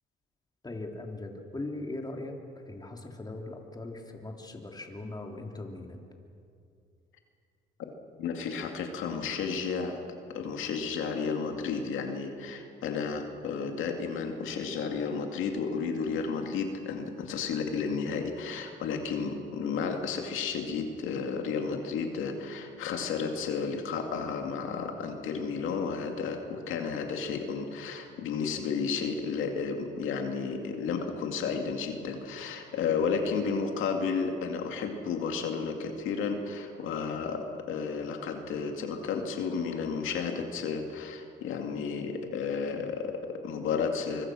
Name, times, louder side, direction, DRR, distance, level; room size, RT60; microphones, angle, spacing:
voice 1, 0.6-2.3 2.7-6.0, left 2 dB, 20° left, 2 dB, 3.2 m, -39 dB
voice 2, 8.2-10.0 10.3-44.3, left 5 dB, 85° left, 4 dB, 2.4 m, -32 dB
25.0 x 24.0 x 6.3 m, 2.5 s
cardioid pair, 90°, 20 cm